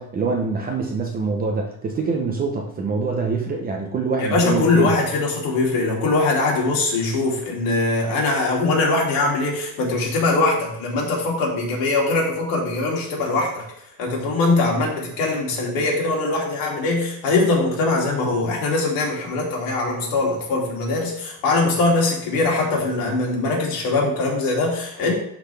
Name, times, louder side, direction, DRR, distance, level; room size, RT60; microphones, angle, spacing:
voice 1, 0.0-4.9, right 4 dB, 20° right, 1 dB, 0.7 m, -25 dB
voice 2, 4.2-13.7 14.0-25.1, left 3 dB, 50° left, -2 dB, 2.6 m, -21 dB
11.5 x 4.1 x 3.4 m, 0.75 s
cardioid pair, 160°, 44 cm